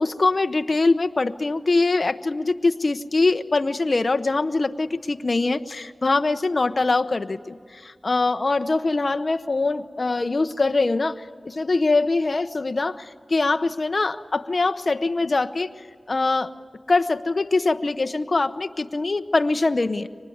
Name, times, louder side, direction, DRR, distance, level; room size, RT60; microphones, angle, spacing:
voice 1, 0.0-7.4 7.7-15.7 16.1-16.5 16.9-20.1, left 3 dB, 55° left, 9 dB, 0.8 m, -23 dB
24.5 x 20.0 x 9.4 m, 2.1 s
wide cardioid pair, 65°, 0 cm